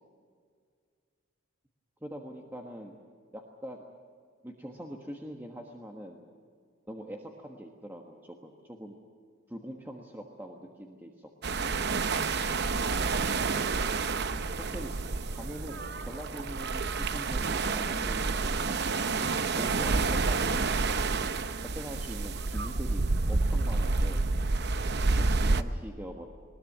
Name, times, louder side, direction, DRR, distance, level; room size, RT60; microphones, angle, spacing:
voice 1, 2.0-3.0 3.3-3.8 4.4-6.2 6.9-8.9 9.5-11.6 14.5-14.9 15.3-18.8 19.5-21.0 21.7-24.3 25.2-26.3, equal, 10° right, 1 dB, 1.4 m, -43 dB
sound 1, 11.4-25.6, right 3 dB, 55° right, 0.8 m, -29 dB
20.5 x 19.5 x 8.7 m, 2.1 s
head